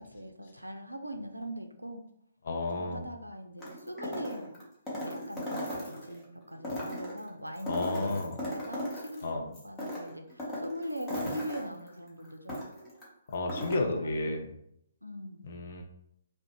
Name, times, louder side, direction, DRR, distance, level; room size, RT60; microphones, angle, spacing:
voice 1, 0.0-2.0 2.7-4.5 5.0-12.7 13.7-14.3 15.0-15.4, equal, 85° right, 6 dB, 0.3 m, -42 dB
voice 2, 2.5-3.1 7.7-8.4 9.2-9.4 13.3-14.4 15.4-15.8, left 2 dB, 50° left, 3 dB, 0.4 m, -32 dB
sound 1, 3.6-6.2 6.6-9.2 9.5-13.0 13.3-13.8, left 1 dB, 10° left, 0.7 m, -37 dB
2.4 x 2.0 x 2.8 m, 0.73 s
figure-of-eight pair, 130°, 0 cm